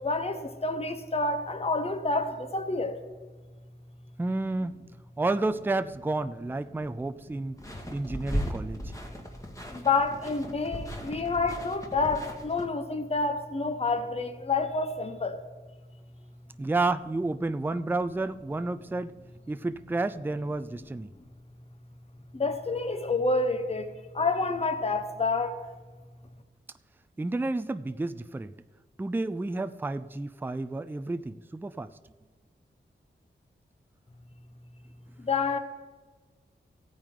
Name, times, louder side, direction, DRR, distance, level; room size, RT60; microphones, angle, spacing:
voice 1, 0.0-2.9 9.7-15.4 22.3-23.9 24.1-25.5 35.2-35.6, left 3 dB, 30° left, 8 dB, 0.8 m, -28 dB
voice 2, 4.2-4.8 5.2-7.6 7.9-8.9 16.6-19.1 19.5-21.1 27.2-28.5 29.0-31.9, right 2 dB, 10° right, 11 dB, 0.4 m, -30 dB
sound 1, 7.6-12.7, equal, 15° left, 1.7 m, -37 dB
15.0 x 9.0 x 3.8 m, 1.4 s
wide cardioid pair, 75°, 19 cm